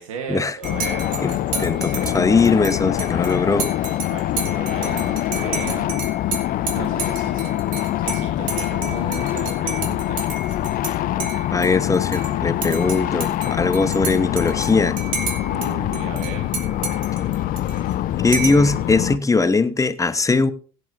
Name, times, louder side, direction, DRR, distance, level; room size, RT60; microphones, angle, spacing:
voice 1, 0.0-2.2 4.1-5.9 6.6-7.6 8.0-10.3 15.4-16.5, right 6 dB, 85° right, 1.4 m, -35 dB
sound 1, 0.6-19.2, left 13 dB, 55° left, 0.6 m, -24 dB
Dishes pots and pans / Cutlery silverware / Chink clink, 0.6-10.9 11.2-12.3 12.6-15.7 15.9-17.9 18.3-18.7, right 5 dB, 50° right, 3.2 m, -31 dB
voice 2, 1.6-3.7 11.5-15.0 18.2-20.5, left 4 dB, 20° left, 1.1 m, -20 dB
16.5 x 9.7 x 2.6 m
hypercardioid pair, 70°, 17 cm